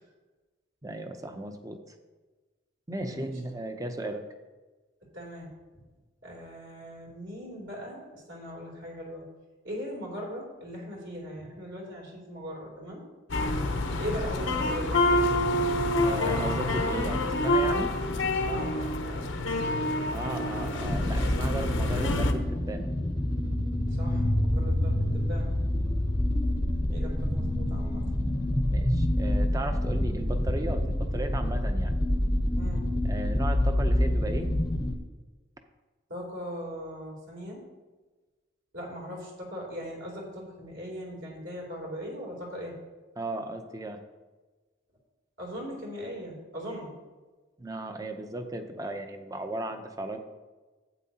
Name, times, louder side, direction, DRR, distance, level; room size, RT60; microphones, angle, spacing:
voice 1, 0.8-1.9 2.9-4.2 16.0-17.9 20.1-22.9 28.5-31.9 33.0-34.5 43.2-44.0 47.6-50.2, right 1 dB, 15° right, 6 dB, 0.6 m, -36 dB
voice 2, 3.0-3.3 5.1-5.8 6.2-9.2 9.6-13.0 14.0-15.0 18.5-19.3 23.9-25.5 26.4-28.0 32.5-32.8 36.1-37.6 38.7-42.7 45.4-46.9, equal, 70° right, -2 dB, 3.2 m, -39 dB
sound 1, 13.3-22.3, left 1 dB, 70° left, 0.8 m, -27 dB
sound 2, 20.8-34.9, left 1 dB, 15° left, 0.7 m, -27 dB
12.0 x 8.5 x 2.8 m, 1.3 s
head